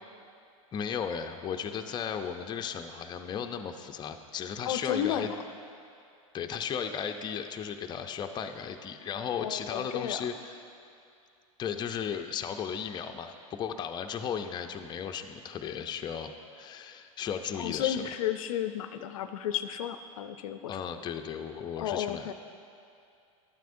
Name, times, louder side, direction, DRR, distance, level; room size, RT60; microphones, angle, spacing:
voice 1, 0.7-5.3 6.3-10.6 11.6-18.0 20.7-22.3, left 7 dB, 25° left, 5 dB, 0.5 m, -35 dB
voice 2, 4.7-5.3 9.4-10.2 17.6-20.8 21.8-22.3, left 10 dB, 75° left, 10 dB, 0.5 m, -33 dB
11.5 x 9.2 x 2.6 m, 2.5 s
hypercardioid pair, 100°, 18 cm